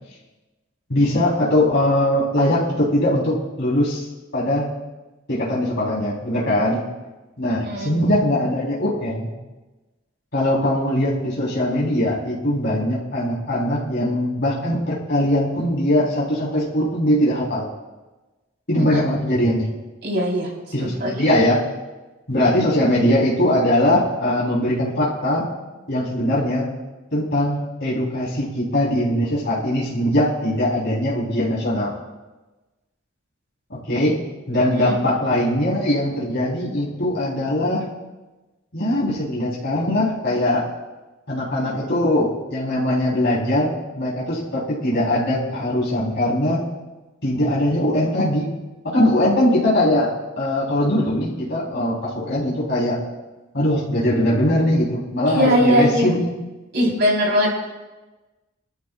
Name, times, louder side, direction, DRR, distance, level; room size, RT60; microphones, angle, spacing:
voice 1, 0.9-4.1 4.3-4.7 5.3-6.8 7.4-9.3 10.3-17.7 18.7-19.7 20.7-21.6 22.3-25.5 25.9-26.7 27.1-31.9 33.7-34.2 34.5-37.8 38.7-40.7 41.3-46.6 47.2-48.5 48.8-53.0 53.5-56.3, left 1 dB, 60° left, -7 dB, 3.8 m, -21 dB
voice 2, 7.5-8.0 18.7-19.0 20.0-20.5 20.8-21.1 34.5-35.1 55.3-56.1 56.7-57.5, equal, 60° right, -2 dB, 4.0 m, -21 dB
25.0 x 13.0 x 2.4 m, 1.2 s
head